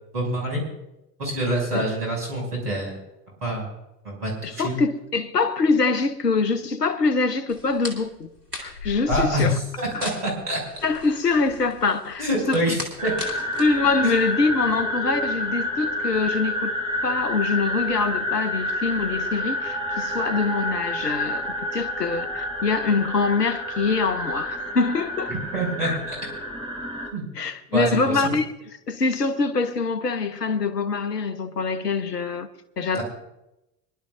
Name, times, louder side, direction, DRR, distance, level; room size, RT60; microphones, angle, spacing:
voice 1, 0.1-0.6 1.2-3.0 3.4-3.7 4.0-4.8 9.1-10.6 12.2-12.8 13.0-13.1 14.0-14.1 25.5-26.1 27.1-27.2 27.7-28.3 32.9-33.0, right 1 dB, 75° right, 6.6 m, -26 dB
voice 2, 4.4-8.3 8.6-9.6 9.9-10.0 10.8-12.8 13.6-16.8 17.0-25.3 25.8-26.0 27.3-32.5 32.8-33.0, left 4 dB, 80° left, 1.2 m, -24 dB
sound 1, 7.5-14.8, left 3 dB, 90° right, 2.9 m, -38 dB
sound 2, 13.0-27.1, left 1 dB, 10° right, 6.5 m, -29 dB
25.0 x 12.0 x 2.6 m
figure-of-eight pair, 80°, 48 cm